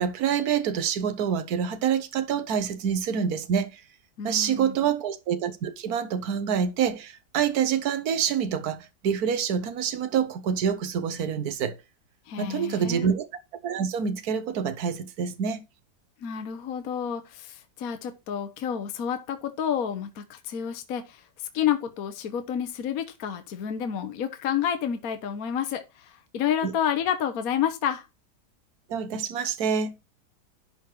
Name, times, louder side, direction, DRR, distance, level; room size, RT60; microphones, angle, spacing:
voice 1, 0.0-3.8 4.2-11.8 12.4-13.2 13.6-15.6 26.6-26.7 28.9-29.9, right 7 dB, 55° right, 1.5 m, -26 dB
voice 2, 4.2-4.9 12.3-13.1 16.2-21.3 21.5-28.0, left 9 dB, 55° left, 1.3 m, -29 dB
11.5 x 4.2 x 4.7 m
omnidirectional pair, 2.0 m